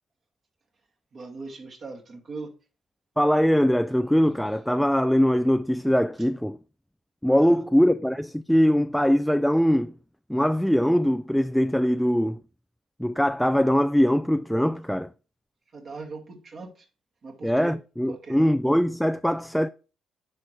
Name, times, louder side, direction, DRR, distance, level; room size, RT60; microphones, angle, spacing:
voice 1, 1.1-2.5 7.4-7.6 15.7-16.9 17.2-17.7 18.1-18.5, right 4 dB, 50° right, 2.3 m, -40 dB
voice 2, 3.2-6.6 7.2-9.9 10.3-12.4 13.0-15.1 17.4-19.7, equal, ahead, 0.3 m, -22 dB
10.0 x 4.3 x 3.3 m
hypercardioid pair, 50°, 0 cm